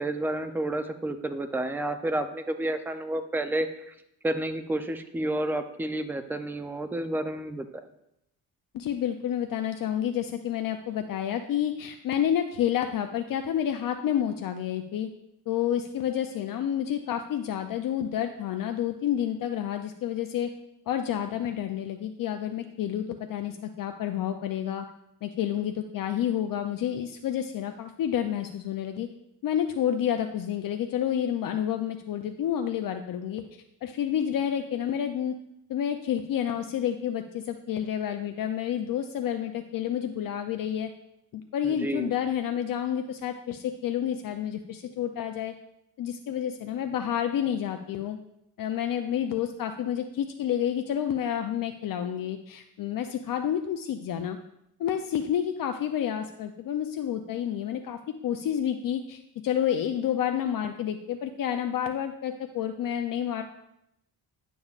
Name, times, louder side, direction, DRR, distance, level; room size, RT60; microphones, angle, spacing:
voice 1, 0.0-3.9 4.2-7.7 41.6-42.1, right 1 dB, 5° right, 9 dB, 0.4 m, -30 dB
voice 2, 8.7-15.1 15.5-20.5 20.9-24.9 25.2-29.1 29.4-35.4 35.7-40.9 41.3-45.5 46.0-48.2 48.6-54.4 54.8-63.4, left 10 dB, 60° left, 6 dB, 0.5 m, -29 dB
10.5 x 6.9 x 2.4 m, 0.80 s
cardioid pair, 130°, 38 cm